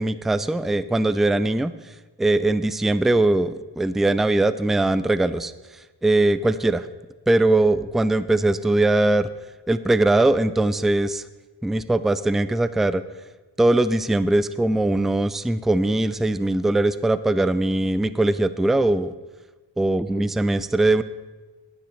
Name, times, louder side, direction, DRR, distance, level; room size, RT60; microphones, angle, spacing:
voice 1, 0.0-1.7 2.2-5.5 6.0-6.9 7.3-9.3 9.7-11.2 11.6-13.0 13.6-19.1 19.8-21.0, right 2 dB, ahead, 14 dB, 0.4 m, -21 dB
11.5 x 9.4 x 4.5 m, 1.2 s
wide cardioid pair, 60°, 44 cm